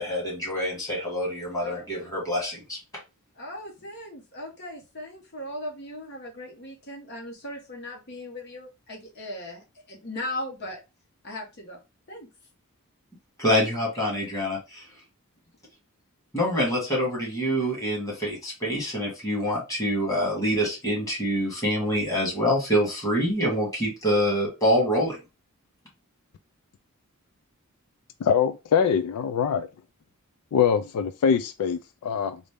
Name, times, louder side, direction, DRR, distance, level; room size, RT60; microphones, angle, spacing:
voice 1, 0.0-2.8 13.4-14.9 16.3-25.2, equal, 15° left, 1.8 m, -26 dB
voice 2, 3.4-10.8 11.2-11.8 12.1-12.3, left 1 dB, 50° left, 0.9 m, -38 dB
voice 3, 28.2-29.7 30.5-32.4, left 7 dB, 85° left, 0.3 m, -23 dB
3.9 x 2.1 x 3.4 m
head